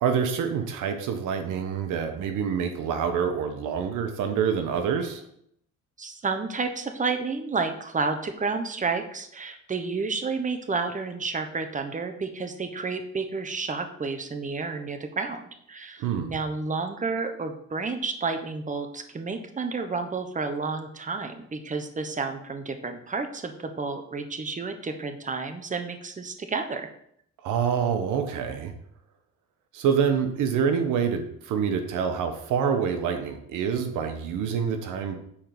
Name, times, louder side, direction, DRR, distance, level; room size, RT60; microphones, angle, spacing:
voice 1, 0.0-5.2 16.0-16.3 27.4-28.7 29.7-35.1, right 7 dB, 90° right, 6 dB, 1.1 m, -26 dB
voice 2, 6.0-26.9, right 4 dB, 25° right, 6 dB, 1.1 m, -31 dB
8.6 x 4.5 x 5.2 m, 0.70 s
cardioid pair, 90°, 30 cm